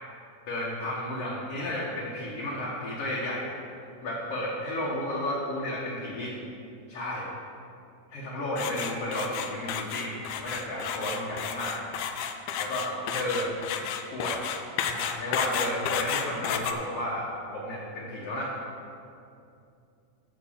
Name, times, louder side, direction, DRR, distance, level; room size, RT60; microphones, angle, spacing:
voice 1, 0.5-3.5 4.0-6.3 6.9-7.3 8.1-11.8 12.6-13.5 14.1-14.3 14.8-18.5, left 1 dB, 55° left, -7 dB, 2.3 m, -32 dB
sound 1, 8.6-16.7, left 8 dB, 75° left, 1.7 m, -32 dB
13.0 x 4.5 x 7.2 m, 2.5 s
omnidirectional pair, 3.7 m